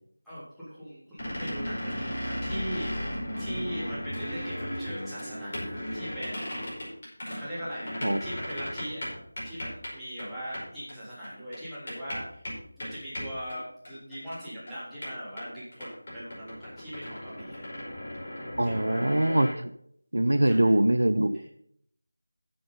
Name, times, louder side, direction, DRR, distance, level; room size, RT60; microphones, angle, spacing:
voice 1, 0.2-2.9 3.4-6.6 7.4-12.2 12.8-17.7 18.6-19.1 20.4-20.7 21.3-21.5, equal, ahead, -15 dB, 3.3 m, -40 dB
sound 1, 1.2-9.9 10.2-10.3 10.5-10.6 10.9-11.0 11.2-14.4 14.7-14.8 15.0-19.5, equal, 45° left, 5.2 m, -36 dB
voice 2, 18.6-19.7 20.1-21.4, right 1 dB, 75° right, 12 dB, 0.7 m, -23 dB
9.8 x 7.7 x 5.5 m, 0.68 s
figure-of-eight pair, 170°, 0 cm